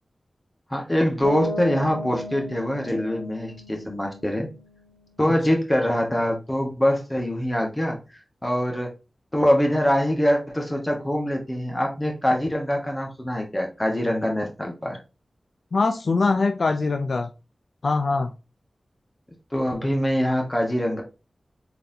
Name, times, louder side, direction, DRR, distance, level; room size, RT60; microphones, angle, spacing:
voice 1, 0.7-4.5 5.2-8.9 9.3-15.0 19.5-21.0, equal, 20° left, 1 dB, 1.3 m, -24 dB
Bass guitar, 1.2-5.1, left 1 dB, 90° left, 1.3 m, -35 dB
voice 2, 15.7-17.3 17.8-18.3, left 3 dB, 70° left, 7 dB, 0.3 m, -22 dB
4.0 x 3.3 x 2.7 m, 0.30 s
wide cardioid pair, 65°, 0 cm